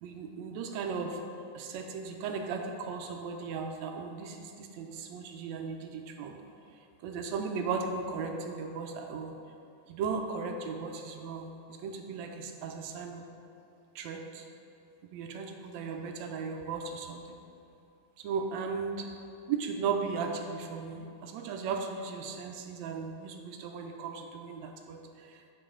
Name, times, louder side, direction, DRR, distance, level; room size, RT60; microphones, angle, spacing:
voice 1, 0.0-1.2 1.5-6.4 7.0-9.3 9.9-13.2 14.0-14.5 15.1-17.4 18.2-19.1 19.5-25.3, right 5 dB, 80° right, 4 dB, 1.8 m, -36 dB
9.2 x 6.8 x 3.7 m, 2.7 s
omnidirectional pair, 3.3 m